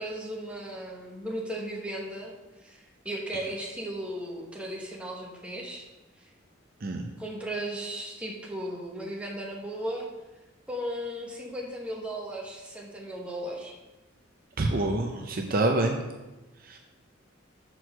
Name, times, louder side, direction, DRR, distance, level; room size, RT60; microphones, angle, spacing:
voice 1, 0.0-2.3 2.6-2.8 3.0-5.9 7.2-10.1 10.7-13.8, right 1 dB, 5° right, -2 dB, 1.2 m, -36 dB
voice 2, 14.6-16.0 16.7-16.8, right 2 dB, 45° right, 3 dB, 0.6 m, -26 dB
6.3 x 4.6 x 6.0 m, 1.1 s
head